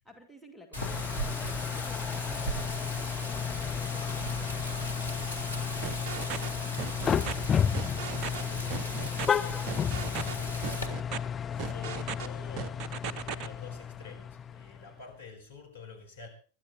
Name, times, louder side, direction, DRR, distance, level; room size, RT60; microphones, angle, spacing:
voice 1, 0.0-10.3, equal, ahead, 2.7 m, -55 dB
Wind, 0.7-10.9, right 1 dB, 85° left, 2.2 m, -38 dB
sound 1, 0.8-15.1, left 8 dB, 20° left, 0.7 m, -33 dB
sound 2, 5.8-6.5 6.8-7.3 7.7-8.4 8.7-9.3 9.7-10.3 10.6-11.2 11.6-12.3 12.6-13.5, right 7 dB, 40° right, 0.9 m, -36 dB
voice 2, 11.5-16.3, left 5 dB, 70° left, 6.1 m, -48 dB
24.5 x 12.0 x 4.5 m
figure-of-eight pair, 90°, 0 cm